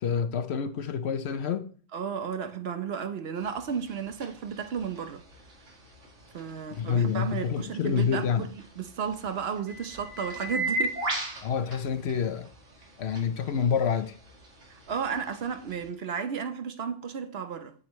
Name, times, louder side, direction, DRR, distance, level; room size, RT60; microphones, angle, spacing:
voice 1, 0.0-1.7 6.8-8.5 11.4-12.5 13.0-14.2, left 7 dB, 65° left, 0.9 m, -27 dB
voice 2, 1.9-5.2 6.3-11.0 14.7-17.7, right 7 dB, 60° right, 1.0 m, -33 dB
sound 1, 3.4-15.9, right 1 dB, 80° right, 2.3 m, -39 dB
8.7 x 7.8 x 3.1 m
omnidirectional pair, 1.2 m